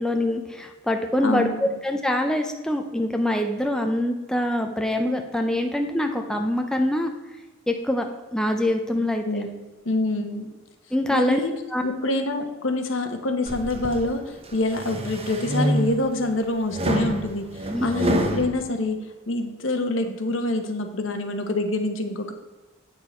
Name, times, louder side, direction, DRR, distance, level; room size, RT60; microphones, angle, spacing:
voice 1, 0.0-7.1 7.7-8.1 8.3-9.2 10.9-11.4 11.7-11.8 17.7-17.9, left 1 dB, 5° left, 4 dB, 0.5 m, -24 dB
voice 2, 1.2-1.7 9.3-9.5 9.8-10.5 11.1-11.5 11.8-17.5 17.8-22.3, left 2 dB, 70° left, 6 dB, 1.0 m, -26 dB
sound 1, 13.5-14.0 14.5-16.2 16.7-18.5, right 1 dB, 30° right, 0.8 m, -26 dB
8.7 x 6.6 x 4.4 m, 1.2 s
head